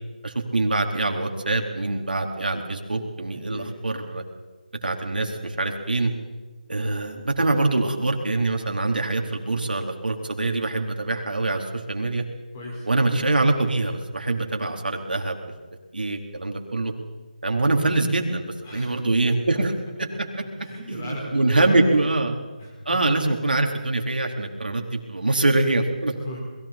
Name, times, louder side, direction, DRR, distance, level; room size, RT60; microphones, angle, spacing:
voice 1, 0.2-4.2 4.8-6.1 6.7-12.2 12.9-15.4 15.9-16.9 17.4-19.7 20.9-22.3 22.9-26.2, right 2 dB, 80° right, 2 dB, 4.0 m, -24 dB
voice 2, 12.5-12.9 18.6-19.0 20.6-22.1 22.6-23.0 26.2-26.4, left 1 dB, 15° left, -2 dB, 5.1 m, -37 dB
29.0 x 21.5 x 4.5 m, 1.3 s
figure-of-eight pair, 175°, 5 cm